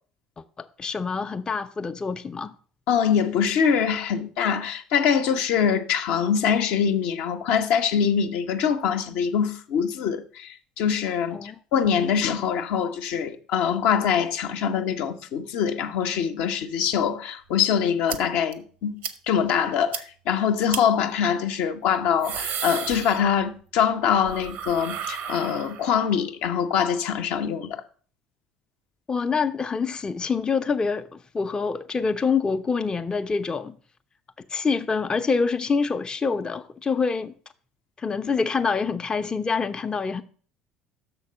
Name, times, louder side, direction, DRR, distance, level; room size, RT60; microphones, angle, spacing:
voice 1, 0.6-2.5 11.3-11.5 29.1-33.8 34.5-37.3 38.0-40.2, left 5 dB, 20° left, 0.5 m, -26 dB
voice 2, 2.9-10.5 10.8-19.0 19.3-27.8, left 7 dB, 60° left, 0.6 m, -24 dB
sound 1, 18.1-18.2 18.5-18.6 19.0-19.2 19.5-19.6 19.9-20.0 20.7-20.8 21.9-23.6 23.9-26.1, right 8 dB, 60° right, 0.7 m, -33 dB
6.5 x 4.5 x 6.5 m
figure-of-eight pair, 60°, 4 cm